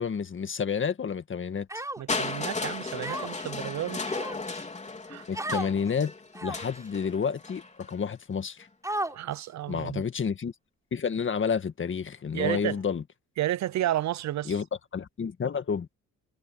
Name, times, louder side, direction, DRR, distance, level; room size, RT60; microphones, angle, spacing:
voice 1, 0.0-1.7 5.3-6.1 6.4-8.7 9.7-10.5 10.9-13.0 14.5-14.7 14.9-15.9, left 6 dB, 40° left, 1.8 m, -30 dB
Human voice, 1.7-2.3 3.0-3.5 4.0-4.6 5.3-5.7 6.3-6.8 7.5-7.6 8.8-9.4, right 1 dB, 10° right, 5.5 m, -34 dB
voice 2, 2.0-4.0 5.1-5.3 9.1-10.0 12.3-12.8 13.4-14.5, right 13 dB, 65° right, 0.8 m, -31 dB
Crushing, 2.1-8.0 8.9-9.0, left 3 dB, 25° left, 3.8 m, -35 dB
cardioid pair, 90°, 30 cm